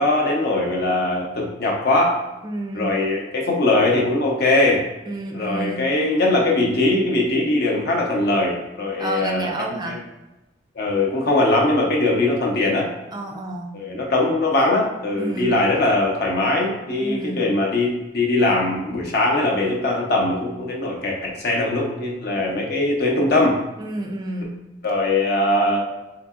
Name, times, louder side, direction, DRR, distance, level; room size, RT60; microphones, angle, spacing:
voice 1, 0.0-2.2 2.7-4.8 5.3-9.5 9.8-10.0 10.7-12.9 13.7-23.6 24.8-25.9, left 2 dB, 60° left, -1 dB, 0.8 m, -21 dB
voice 2, 2.4-3.0 5.1-5.9 9.0-10.0 13.1-13.8 15.2-15.6 17.0-17.5 23.8-24.6, right 1 dB, 25° right, 0 dB, 0.4 m, -29 dB
3.8 x 2.8 x 2.4 m, 1.0 s
head